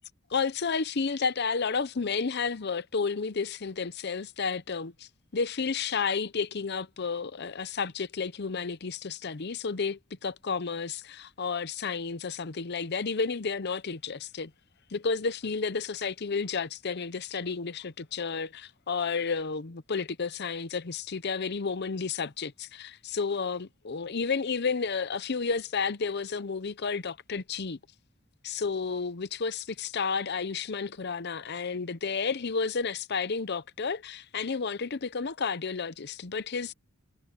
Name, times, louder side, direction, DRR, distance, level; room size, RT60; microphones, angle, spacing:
voice 1, 0.3-14.5 14.9-27.8 28.4-36.7, left 5 dB, 50° left, 0.7 m, -31 dB
head